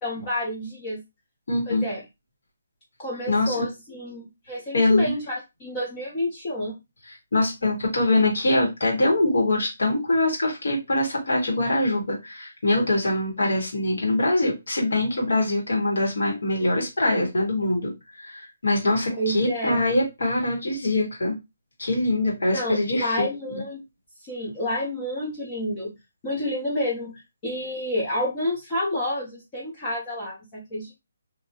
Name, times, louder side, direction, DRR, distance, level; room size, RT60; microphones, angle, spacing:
voice 1, 0.0-1.0 1.7-2.0 3.0-5.3 5.6-6.8 19.2-19.8 22.5-23.8 24.3-25.9 26.2-30.9, left 1 dB, 15° left, -4 dB, 0.6 m, -29 dB
voice 2, 1.5-1.9 3.3-3.7 4.7-5.1 7.3-17.9 18.2-21.4 21.8-23.3 23.5-23.6, left 2 dB, 70° left, -2 dB, 1.6 m, -23 dB
2.7 x 2.6 x 2.7 m, 0.23 s
hypercardioid pair, 175°, 0 cm